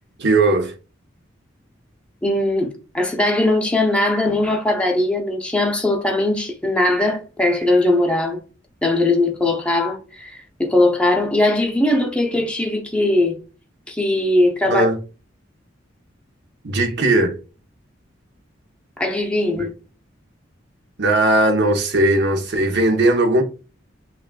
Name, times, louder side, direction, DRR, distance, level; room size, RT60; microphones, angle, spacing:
voice 1, 0.2-0.7 14.7-15.0 16.6-17.4 19.5-19.7 21.0-23.4, right 2 dB, 60° right, 0.8 m, -18 dB
voice 2, 2.2-8.4 8.8-13.4 13.9-14.9 19.0-19.7, left 1 dB, 5° left, 0.6 m, -20 dB
5.8 x 2.4 x 2.2 m
head